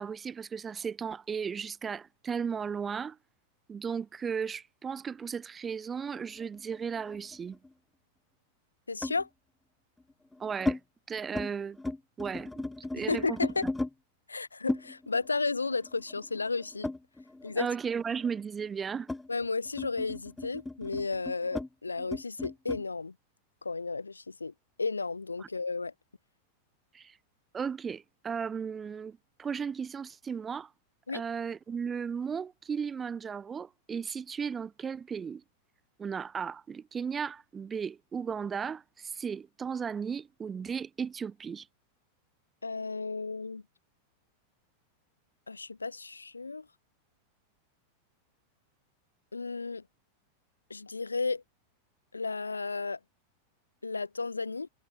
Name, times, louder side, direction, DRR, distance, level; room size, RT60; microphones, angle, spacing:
voice 1, 0.0-3.2 3.7-7.6 10.4-10.8 11.1-11.8 12.2-12.7 12.9-13.7 17.6-19.1 25.4-25.5 26.9-27.1 27.5-30.7 31.1-35.4 36.0-41.7, right 6 dB, 20° right, 1.0 m, -35 dB
sound 1, 6.1-7.7 9.0-9.3 10.0-10.8 11.2-11.5 11.8-13.9 14.7-17.6 17.9-22.8, left 2 dB, 5° left, 0.8 m, -37 dB
voice 2, 8.9-9.3 13.0-13.6 14.3-16.9 17.4-17.7 19.3-23.1 23.6-24.5 24.8-25.9 31.1-31.2 42.6-43.6 45.5-46.7 49.3-49.8 50.7-51.4 52.1-53.0 53.8-54.7, left 4 dB, 80° left, 0.6 m, -33 dB
figure-of-eight pair, 90°, 0 cm